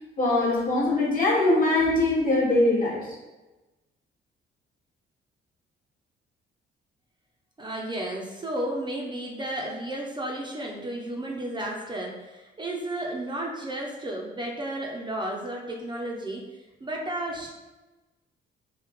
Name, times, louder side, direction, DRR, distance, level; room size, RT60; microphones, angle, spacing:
voice 1, 0.2-3.1, left 2 dB, 45° left, -3 dB, 1.2 m, -22 dB
voice 2, 7.6-16.4 16.8-17.5, right 1 dB, 25° right, -1 dB, 0.6 m, -33 dB
3.2 x 2.8 x 3.5 m, 1.1 s
cardioid pair, 90°, 20 cm